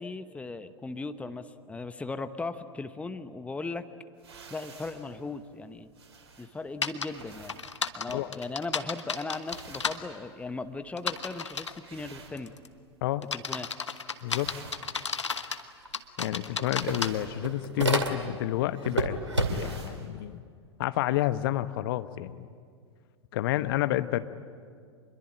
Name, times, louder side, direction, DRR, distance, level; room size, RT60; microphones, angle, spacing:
voice 1, 0.0-3.8 4.5-5.9 6.4-7.6 7.9-12.5 13.3-13.7, left 3 dB, 10° left, 11 dB, 1.0 m, -37 dB
sound 1, 4.2-13.1 13.4-13.9 14.1-20.1, right 4 dB, 60° right, 5.4 m, -51 dB
sound 2, 6.8-7.1 7.5-10.0 11.0-11.8 12.4-12.7 13.2-15.6 15.9-17.1, left 5 dB, 80° left, 1.2 m, -32 dB
voice 2, 14.2-14.5 16.2-19.2 19.5-20.4 20.8-22.5 23.3-24.2, left 15 dB, 50° left, 13 dB, 1.0 m, -29 dB
sound 3, 15.8-15.9 16.2-18.5 18.8-19.9, right 2 dB, 85° right, 2.3 m, -30 dB
27.0 x 22.0 x 8.8 m, 2.1 s
figure-of-eight pair, 95°, 15 cm